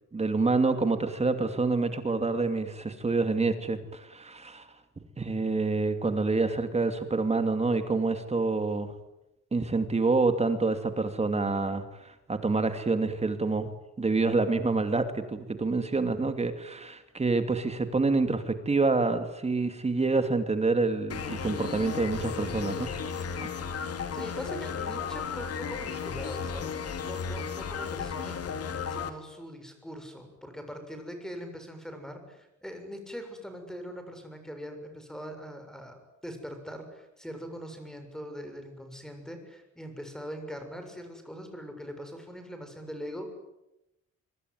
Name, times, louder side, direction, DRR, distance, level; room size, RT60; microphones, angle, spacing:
voice 1, 0.1-4.7 5.2-8.9 9.5-13.7 14.0-22.9, right 3 dB, 20° right, 8 dB, 2.6 m, -27 dB
sound 1, 21.1-29.1, left 6 dB, 55° left, 3.2 m, -34 dB
voice 2, 24.1-28.4 28.9-43.3, equal, ahead, 6 dB, 6.8 m, -42 dB
25.0 x 25.0 x 9.5 m, 0.91 s
cardioid pair, 135°, 29 cm